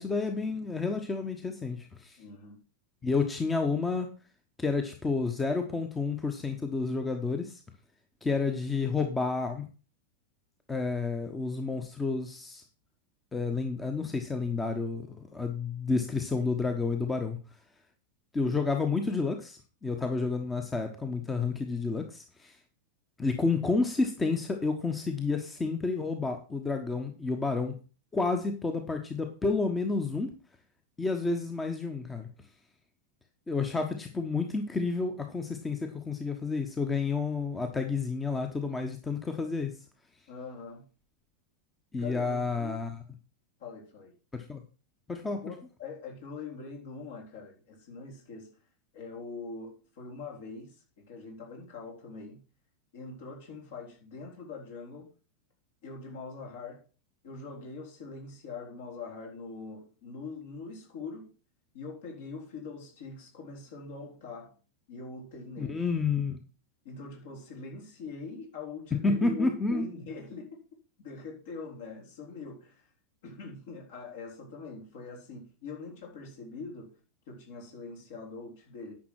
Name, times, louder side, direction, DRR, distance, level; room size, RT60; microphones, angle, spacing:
voice 1, 0.0-2.2 3.0-4.1 4.6-7.6 8.2-9.7 10.7-12.6 13.3-17.4 18.3-22.6 23.2-27.7 28.1-30.3 31.0-32.3 33.5-39.7 41.9-42.9 44.3-44.6 45.1-45.4 65.6-66.4 68.9-69.9, left 4 dB, 15° left, 1.2 m, -30 dB
voice 2, 2.2-2.6 40.3-40.9 42.0-42.8 43.6-44.1 45.4-48.5 48.9-52.4 52.9-55.1 55.8-56.8 57.2-61.3 61.7-64.5 64.9-65.8 66.8-70.6 71.0-72.9 73.2-76.9 77.3-78.9, left 4 dB, 55° left, 4.2 m, -43 dB
10.0 x 6.1 x 6.1 m
figure-of-eight pair, 90°, 0 cm